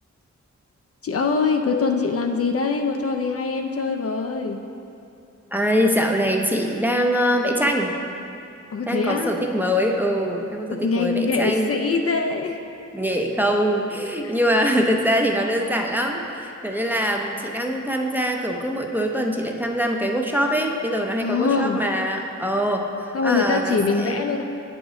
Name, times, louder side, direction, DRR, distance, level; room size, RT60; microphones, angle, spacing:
voice 1, 1.0-4.6 8.7-9.5 10.7-12.6 14.2-14.4 21.2-21.8 23.1-24.4, left 4 dB, 50° left, 4 dB, 0.5 m, -23 dB
voice 2, 5.5-8.0 8.9-11.7 12.9-24.2, equal, 5° right, 1 dB, 0.6 m, -23 dB
8.5 x 5.0 x 3.7 m, 2.7 s
wide cardioid pair, 70°, 30 cm